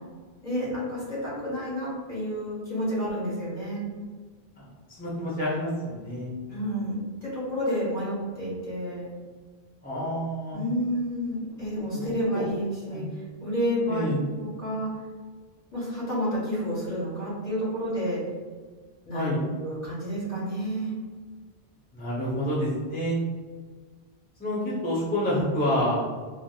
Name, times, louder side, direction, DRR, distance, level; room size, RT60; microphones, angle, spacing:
voice 1, 0.4-3.9 6.5-9.1 10.5-13.0 13.4-14.1 14.4-14.9 15.7-18.2 19.1-19.3 19.6-20.9, equal, 45° left, -10 dB, 1.8 m, -30 dB
voice 2, 5.0-6.3 9.8-10.6 11.7-12.5 12.9-13.1 13.9-14.2 19.1-19.4 21.9-23.2 24.4-26.0, left 1 dB, 10° left, -7 dB, 0.5 m, -28 dB
3.4 x 2.5 x 2.3 m, 1.5 s
omnidirectional pair, 1.1 m